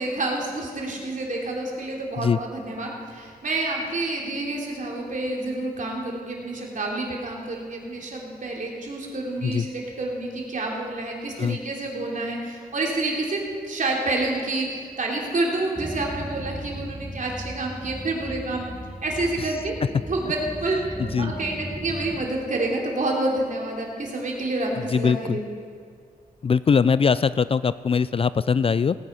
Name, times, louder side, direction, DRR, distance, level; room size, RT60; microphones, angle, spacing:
voice 1, 0.0-18.7 19.0-19.8 20.1-20.8 21.2-25.4, right 2 dB, 55° right, -1 dB, 3.1 m, -28 dB
sound 1, 15.8-22.3, right 1 dB, 10° right, 1.3 m, -37 dB
voice 2, 24.9-25.4 26.4-29.0, left 6 dB, 40° left, 16 dB, 0.3 m, -21 dB
18.0 x 9.3 x 5.6 m, 2.1 s
cardioid pair, 70°, 16 cm